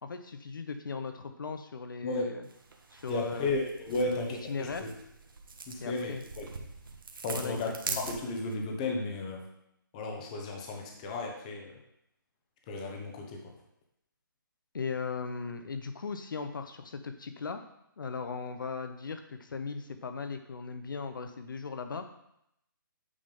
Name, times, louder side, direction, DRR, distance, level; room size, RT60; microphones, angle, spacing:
voice 1, 0.0-2.4 2.9-3.6 3.9-4.9 5.8-6.3 7.3-8.1 14.7-17.6 18.0-22.0, left 5 dB, 65° left, 8 dB, 0.7 m, -38 dB
sound 1, 2.4-8.6, right 4 dB, 75° right, 1.2 m, -43 dB
voice 2, 3.1-4.9 5.7-6.5 7.2-7.7 8.0-9.4 9.9-11.7 12.7-13.4, left 2 dB, 20° left, 2 dB, 0.9 m, -34 dB
8.5 x 3.5 x 5.3 m, 0.79 s
hypercardioid pair, 165°, 12 cm